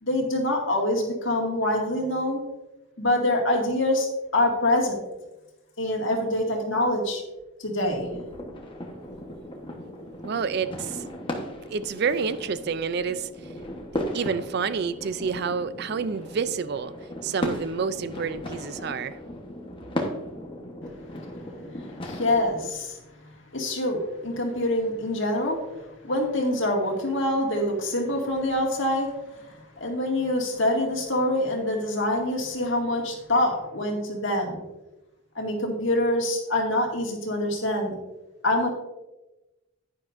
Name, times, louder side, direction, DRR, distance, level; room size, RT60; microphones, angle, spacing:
voice 1, 0.0-2.4 3.0-5.0 5.8-7.2 7.6-8.1 21.2-21.3 21.7-23.0 23.5-25.6 26.0-34.6 35.4-38.0 38.4-38.7, left 1 dB, 60° left, 2.1 m, -25 dB
sound 1, 7.8-22.7, left 1 dB, 25° left, 1.1 m, -36 dB
voice 2, 10.2-11.0 11.7-13.3 14.1-16.9 17.2-19.2, right 5 dB, 50° right, 0.3 m, -28 dB
10.5 x 9.8 x 2.6 m
head